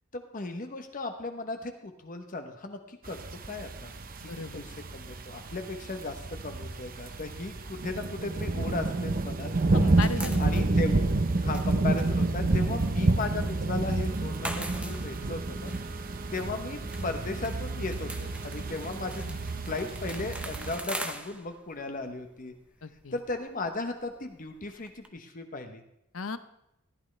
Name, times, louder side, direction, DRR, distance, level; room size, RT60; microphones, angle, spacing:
voice 1, 0.1-3.2 3.4-3.9 4.5-9.5 10.4-11.0 11.4-15.8 16.3-19.2 19.6-22.5 23.1-25.8, left 3 dB, 40° left, 6 dB, 0.9 m, -36 dB
sound 1, 3.0-20.8, right 2 dB, 40° right, 0.7 m, -29 dB
voice 2, 4.3-4.7 9.7-10.4 19.2-19.5 22.8-23.1 26.1-26.4, left 4 dB, 70° left, 12 dB, 0.7 m, -36 dB
sound 2, 7.1-9.4 9.6-25.1, right 1 dB, 5° right, 0.8 m, -44 dB
sound 3, 14.1-21.4, right 3 dB, 75° right, 2.1 m, -48 dB
15.0 x 11.0 x 3.3 m, 0.82 s
head